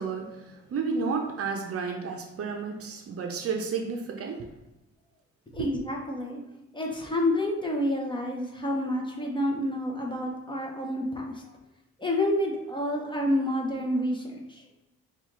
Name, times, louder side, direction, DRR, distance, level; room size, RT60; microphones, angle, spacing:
voice 1, 0.0-4.5 5.6-5.7, right 5 dB, 50° right, 3 dB, 0.6 m, -32 dB
voice 2, 5.5-6.4 6.7-11.4 12.0-14.6, left 1 dB, 15° left, 0 dB, 0.8 m, -29 dB
4.9 x 2.4 x 3.1 m, 0.93 s
cardioid pair, 90°, 30 cm